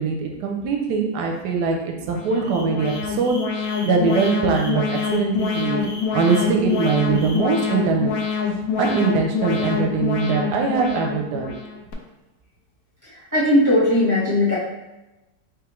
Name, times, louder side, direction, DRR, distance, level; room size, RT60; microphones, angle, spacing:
voice 1, 0.0-3.4 3.8-4.8 5.1-5.8 6.1-8.1 8.8-11.5, right 5 dB, 70° right, 2 dB, 1.0 m, -22 dB
Alarm, 2.0-11.9, left 6 dB, 70° left, 0.9 m, -26 dB
sound 1, 2.4-7.4, left 2 dB, 25° left, 0.4 m, -39 dB
voice 2, 13.3-14.6, left 1 dB, 15° right, -8 dB, 0.6 m, -17 dB
3.6 x 3.3 x 3.0 m, 0.99 s
omnidirectional pair, 2.0 m